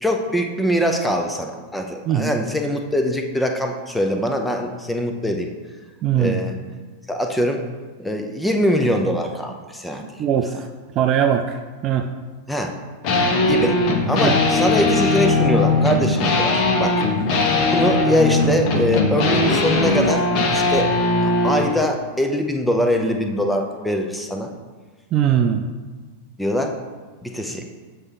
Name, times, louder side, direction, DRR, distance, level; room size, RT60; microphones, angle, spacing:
voice 1, 0.0-5.5 6.2-6.5 7.1-7.6 8.0-10.0 12.5-12.7 13.4-13.8 14.1-17.0 17.6-20.9 21.2-24.5 26.4-26.7 27.2-27.6, equal, 5° left, 3 dB, 0.7 m, -22 dB
voice 2, 2.1-2.4 6.0-6.5 10.2-10.7 10.9-12.1 14.2-14.4 25.1-25.7, right 9 dB, 35° right, 6 dB, 0.4 m, -20 dB
sound 1, 13.0-21.7, left 2 dB, 40° left, 1.0 m, -19 dB
7.9 x 4.3 x 3.7 m, 1.4 s
figure-of-eight pair, 90°, 0 cm